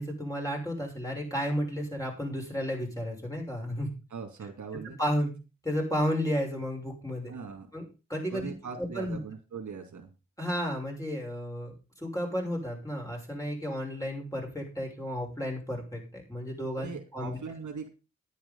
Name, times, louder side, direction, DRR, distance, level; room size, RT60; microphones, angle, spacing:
voice 1, 0.0-3.9 5.0-5.3 5.6-7.3 7.7-7.8 8.1-8.5 8.8-9.2 10.4-17.4, equal, 10° left, 0 dB, 6.5 m, -32 dB
voice 2, 4.1-5.0 7.3-7.7 8.3-10.1 16.7-17.9, right 5 dB, 75° right, 4 dB, 2.5 m, -40 dB
10.5 x 9.6 x 5.5 m, 0.31 s
cardioid pair, 60°, 30 cm